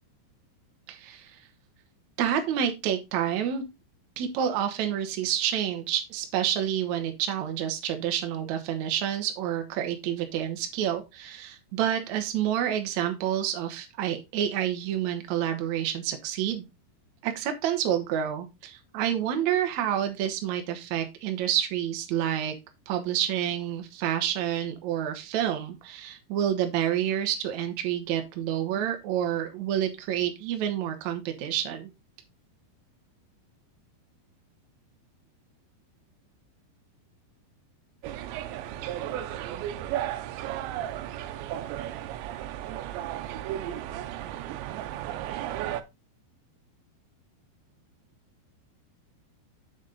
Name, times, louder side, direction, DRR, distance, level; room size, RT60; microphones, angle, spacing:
voice 1, 0.9-1.4 2.2-3.6 4.2-16.6 17.2-22.5 22.9-31.9, right 10 dB, 65° right, 6 dB, 1.9 m, -28 dB
sound 1, 38.0-45.8, right 12 dB, 85° right, 3.0 m, -34 dB
7.2 x 6.6 x 3.9 m, 0.24 s
omnidirectional pair, 5.0 m